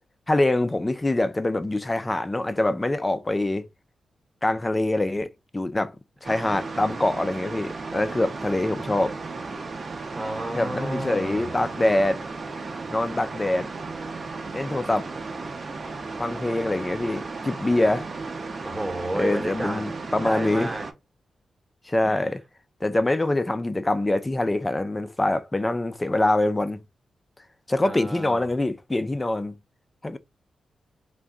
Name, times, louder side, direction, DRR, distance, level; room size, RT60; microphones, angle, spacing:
voice 1, 0.3-3.7 4.4-5.3 5.5-6.0 6.2-9.1 10.5-12.2 12.9-13.7 14.5-15.1 16.2-18.1 19.2-20.7 21.9-22.4 22.8-26.8 27.7-29.5 30.0-30.2, left 2 dB, 15° left, 0.4 m, -24 dB
sound 1, 6.2-20.9, right 3 dB, 40° right, 0.6 m, -35 dB
voice 2, 10.1-11.5 18.6-19.9 20.2-20.9 22.0-22.3 27.8-28.5, right 1 dB, 15° right, 0.9 m, -32 dB
3.5 x 2.2 x 3.7 m
wide cardioid pair, 130°, 0 cm